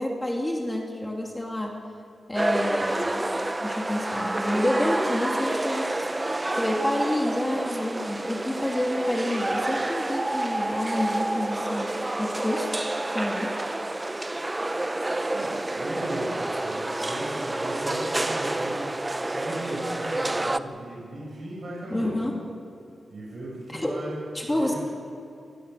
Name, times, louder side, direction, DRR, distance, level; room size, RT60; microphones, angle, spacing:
voice 1, 0.0-1.8 2.3-3.3 3.6-12.7 13.1-13.5 21.9-22.3 23.7-23.9 24.3-24.7, left 1 dB, 15° left, 0 dB, 2.8 m, -29 dB
sound 1, 2.4-20.6, right 2 dB, 20° right, 0.7 m, -29 dB
voice 2, 15.3-22.2 23.1-24.8, right 1 dB, 50° right, -6 dB, 6.5 m, -37 dB
25.0 x 20.5 x 6.9 m, 2.4 s
wide cardioid pair, 100°, 0 cm